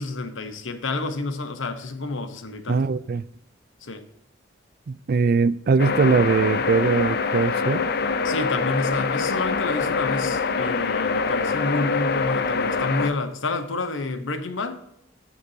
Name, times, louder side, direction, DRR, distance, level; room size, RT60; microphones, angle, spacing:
voice 1, 0.0-2.8 3.8-4.1 8.2-14.8, left 3 dB, 80° left, 1.0 m, -29 dB
voice 2, 2.7-3.2 4.9-7.8, right 4 dB, 50° right, 0.4 m, -21 dB
sound 1, 5.8-13.1, left 4 dB, 55° left, 0.6 m, -24 dB
13.0 x 6.0 x 2.8 m
head